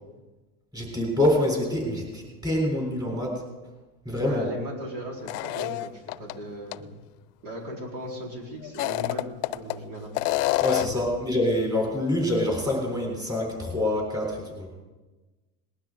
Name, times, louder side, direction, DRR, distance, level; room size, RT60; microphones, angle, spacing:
voice 1, 0.7-3.4 4.1-4.5 10.6-14.8, left 1 dB, 10° right, 0 dB, 3.8 m, -26 dB
voice 2, 4.1-7.0 7.4-10.2 10.8-11.0, equal, 70° right, -1 dB, 4.6 m, -37 dB
sound 1, 5.3-6.3 6.7-6.8 8.6-9.8 10.1-11.1, left 17 dB, 70° left, 0.6 m, -27 dB
19.5 x 12.0 x 3.9 m, 1.2 s
supercardioid pair, 135°, 48 cm